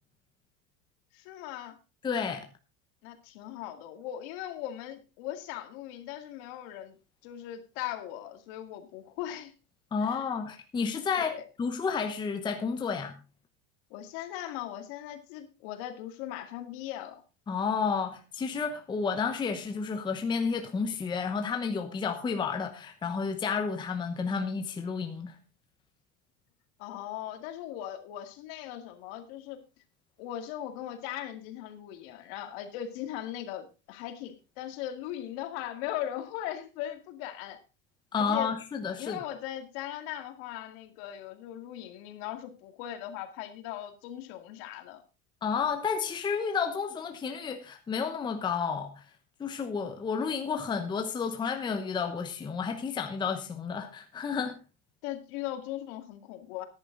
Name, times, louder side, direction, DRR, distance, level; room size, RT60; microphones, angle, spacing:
voice 1, 1.1-1.8 3.0-7.0 7.2-9.5 10.0-10.3 11.3-11.4 13.9-17.2 26.8-29.6 30.2-37.6 38.2-38.5 39.0-45.0 55.0-56.6, left 12 dB, 55° left, 2.2 m, -39 dB
voice 2, 2.0-2.4 9.9-13.1 17.5-25.4 38.1-39.2 45.4-49.0 49.4-54.6, left 5 dB, 10° left, 0.9 m, -31 dB
13.5 x 10.5 x 3.9 m
supercardioid pair, 160°, 37 cm